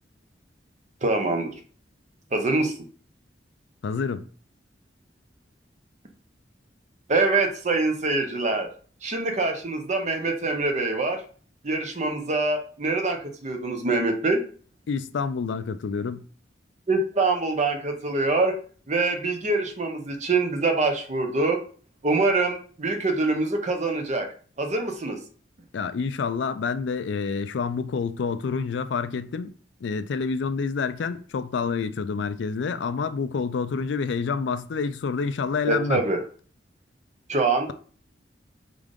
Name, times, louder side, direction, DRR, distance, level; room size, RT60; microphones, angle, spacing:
voice 1, 1.0-1.5 2.3-2.7 7.1-8.7 9.0-11.2 11.6-14.4 16.9-18.6 18.9-21.6 22.0-24.3 24.6-25.2 35.7-36.2 37.3-37.7, right 3 dB, 40° right, 0.8 m, -24 dB
voice 2, 3.8-4.3 14.9-16.3 25.7-36.0, left 5 dB, 70° left, 0.4 m, -28 dB
3.7 x 3.6 x 3.6 m
head